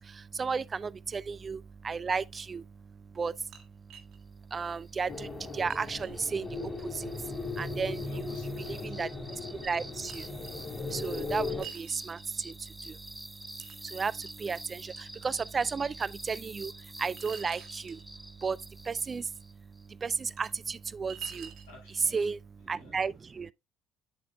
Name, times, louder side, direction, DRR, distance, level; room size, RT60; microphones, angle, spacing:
voice 1, 0.0-8.3 8.7-21.7 22.1-22.4 22.6-23.5, right 5 dB, 35° right, 0.3 m, -35 dB
sound 1, 3.3-4.2 4.7-4.8 5.2-5.3 5.7-6.2 8.0-8.1 8.9-9.0 10.1-10.5 11.0-12.5 13.1-13.8 14.3-14.6 15.0-15.1 15.6-15.7 17.2-18.0 19.4-19.5 20.0-20.5 21.1-21.7, right 8 dB, 55° right, 1.4 m, -47 dB
sound 2, 4.8-19.9, right 1 dB, 5° right, 0.9 m, -48 dB
sound 3, 5.1-11.7, left 3 dB, 40° left, 2.3 m, -37 dB
voice 2, 8.0-9.0 21.6-22.3 22.6-23.1, left 2 dB, 75° left, 4.9 m, -54 dB
8.6 x 7.4 x 2.2 m
figure-of-eight pair, 55°, 0 cm